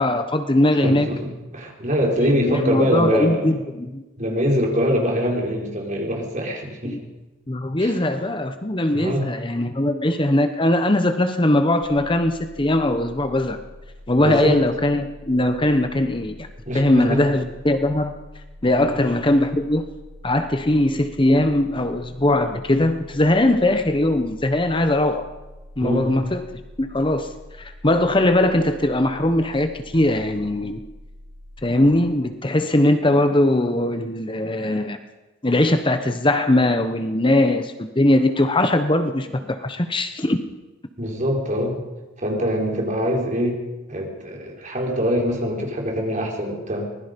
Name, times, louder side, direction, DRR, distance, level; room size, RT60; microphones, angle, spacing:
voice 1, 0.0-1.1 2.4-4.0 6.8-7.0 7.5-13.6 14.1-16.5 16.7-18.1 18.6-19.9 20.2-25.3 25.8-26.5 26.8-27.3 27.6-30.8 31.6-35.0 35.4-40.4, left 1 dB, 25° left, 8 dB, 1.0 m, -20 dB
voice 2, 0.8-3.6 4.2-7.0 7.8-7.9 8.9-9.3 14.2-14.6 16.7-17.4 18.7-18.9 25.8-26.1 37.2-37.3 41.0-41.8 42.2-43.6 43.9-46.9, equal, 40° right, 1 dB, 4.5 m, -24 dB
sound 1, 11.8-31.8, left 1 dB, 50° left, 7.6 m, -44 dB
24.5 x 20.0 x 5.3 m, 1.1 s
head